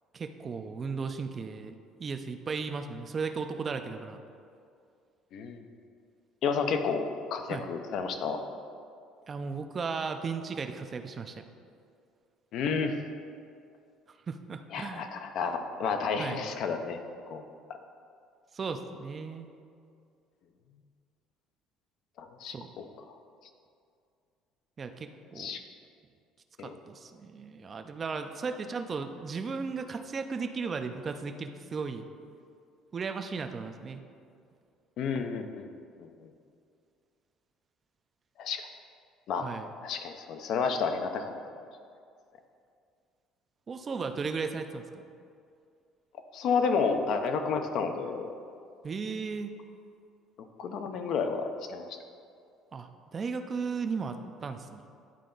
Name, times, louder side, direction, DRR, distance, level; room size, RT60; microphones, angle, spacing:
voice 1, 0.1-4.2 7.5-7.6 9.3-11.4 14.3-15.1 16.2-16.4 18.5-19.5 22.5-22.7 24.8-25.6 26.6-32.0 32.9-34.0 39.4-39.7 43.7-45.0 48.8-49.5 52.7-54.8, right 5 dB, 35° right, 7 dB, 0.5 m, -36 dB
voice 2, 5.3-5.6 6.4-8.4 12.5-13.0 14.7-17.0 17.3-17.4 22.2-22.8 25.4-25.6 26.6-26.8 35.0-35.7 36.0-36.3 38.4-38.7 39.3-39.5 39.8-41.3 46.3-48.3 50.6-51.9, left 5 dB, 65° left, 6 dB, 0.6 m, -31 dB
10.0 x 4.2 x 3.9 m, 2.4 s
cardioid pair, 105°, 0 cm